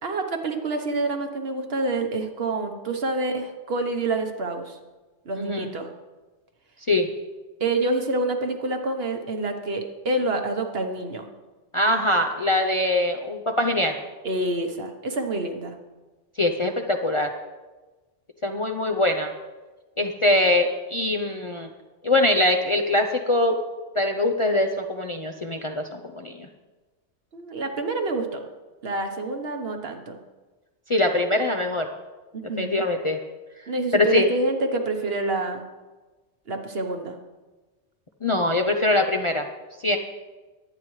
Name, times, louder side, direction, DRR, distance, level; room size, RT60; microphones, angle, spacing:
voice 1, 0.0-4.8 5.2-5.9 7.6-11.3 14.2-15.8 27.3-28.4 28.8-30.2 32.3-32.8 33.7-35.6 36.5-37.2, right 2 dB, 55° right, 5 dB, 1.3 m, -27 dB
voice 2, 11.7-14.0 16.4-17.3 18.4-19.3 20.0-21.7 22.0-23.6 24.0-26.5 30.9-31.9 32.6-33.2 33.9-34.3 38.2-39.5 39.8-40.0, left 1 dB, 35° left, 4 dB, 0.6 m, -22 dB
22.0 x 9.0 x 3.2 m, 1.2 s
omnidirectional pair, 1.2 m